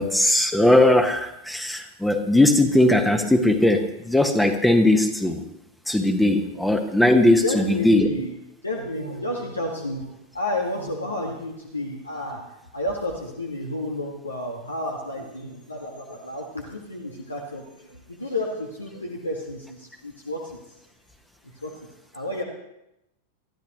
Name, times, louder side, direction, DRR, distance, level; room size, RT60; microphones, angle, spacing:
voice 1, 0.0-5.4 5.9-8.1, left 1 dB, 5° left, 5 dB, 1.2 m, -19 dB
voice 2, 7.4-8.3 8.6-20.8 21.4-21.8 22.1-22.4, left 1 dB, 80° left, 0 dB, 1.6 m, -31 dB
22.0 x 13.5 x 3.0 m, 0.87 s
figure-of-eight pair, 90°, 0 cm